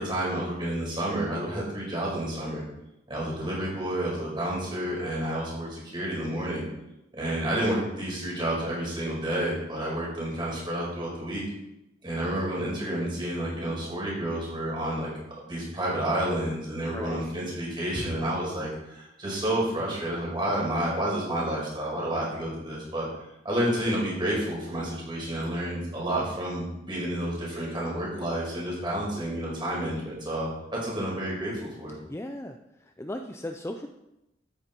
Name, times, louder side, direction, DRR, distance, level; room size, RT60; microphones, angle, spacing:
voice 1, 0.0-2.6 3.1-6.6 7.1-11.4 12.0-15.1 15.4-23.1 23.4-30.5 30.8-31.9, right 1 dB, 25° right, -5 dB, 5.4 m, -30 dB
voice 2, 16.9-17.3 32.1-32.6 33.0-33.9, left 1 dB, 15° left, 5 dB, 0.6 m, -36 dB
13.0 x 9.1 x 4.5 m, 0.89 s
head